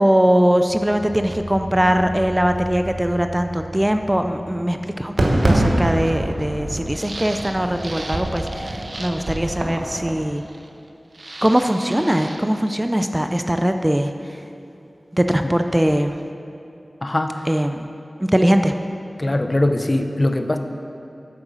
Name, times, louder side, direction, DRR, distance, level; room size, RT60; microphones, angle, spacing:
voice 1, 0.0-10.4 11.4-14.4 15.1-16.2 17.5-17.9 18.2-18.7, equal, 15° right, 7 dB, 0.4 m, -21 dB
sound 1, 0.7-5.9, right 1 dB, 5° left, 2.1 m, -36 dB
Fireworks, 5.2-10.2, right 1 dB, 80° right, 1.0 m, -24 dB
sound 2, 6.0-6.1 6.4-6.5 6.9-9.4 10.4-10.9 11.1-12.5, right 2 dB, 55° right, 0.7 m, -37 dB
voice 2, 17.0-17.5 19.2-20.6, left 1 dB, 35° left, 7 dB, 0.6 m, -21 dB
8.9 x 7.8 x 6.1 m, 2.7 s
wide cardioid pair, 75°, 0 cm